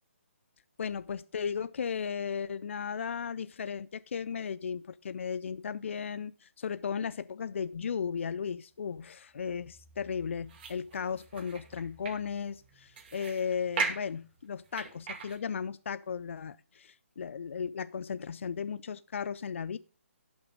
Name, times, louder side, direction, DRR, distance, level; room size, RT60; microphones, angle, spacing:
voice 1, 0.8-19.8, left 6 dB, 65° left, 0.4 m, -35 dB
sound 1, 8.8-15.4, right 5 dB, 45° right, 2.5 m, -40 dB
11.0 x 6.1 x 5.2 m
figure-of-eight pair, 145°, 7 cm